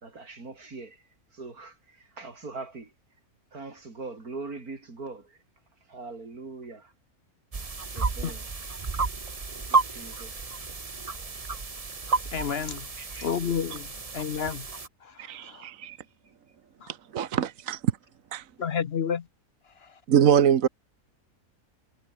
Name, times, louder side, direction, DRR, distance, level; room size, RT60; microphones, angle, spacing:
voice 1, 0.0-2.9 3.5-5.4 5.8-6.9 7.9-8.5 9.5-10.6 13.0-13.4 13.9-14.4 15.8-16.0, right 3 dB, 85° right, 4.2 m, -42 dB
sound 1, 7.5-14.9, right 4 dB, 25° right, 1.2 m, -31 dB
voice 2, 12.3-12.9 13.2-13.9 14.1-14.7 15.0-15.7 16.8-16.9 18.6-19.2, left 7 dB, 50° left, 0.9 m, -30 dB
voice 3, 15.2-15.9 16.9-17.9 18.3-18.5 20.1-20.7, right 9 dB, 70° right, 1.4 m, -23 dB
omnidirectional pair, 1.5 m